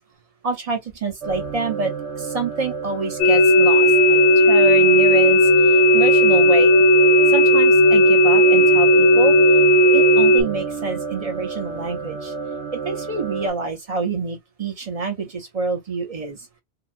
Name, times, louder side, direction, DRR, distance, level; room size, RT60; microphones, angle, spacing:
voice 1, 0.4-1.9 2.2-5.4 5.9-6.7 7.3-9.3 9.9-12.3 12.8-16.4, right 4 dB, 35° right, 0.8 m, -27 dB
sound 1, 1.2-13.5, right 5 dB, 85° right, 1.3 m, -31 dB
sound 2, 3.2-10.4, equal, 75° left, 1.1 m, -14 dB
2.8 x 2.3 x 2.5 m
omnidirectional pair, 1.1 m